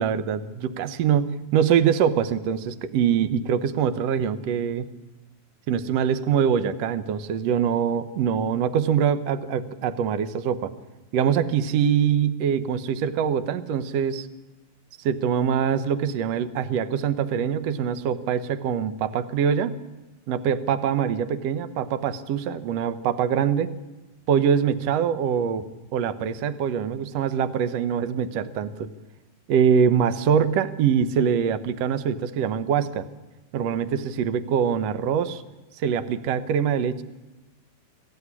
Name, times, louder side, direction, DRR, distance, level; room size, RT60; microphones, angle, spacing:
voice 1, 0.0-4.9 5.7-10.7 11.1-14.3 15.0-19.8 20.3-23.7 24.3-28.9 29.5-33.1 33.5-35.4 35.8-37.0, right 8 dB, 80° right, 11 dB, 1.4 m, -24 dB
24.5 x 15.0 x 9.8 m, 1.1 s
omnidirectional pair, 4.5 m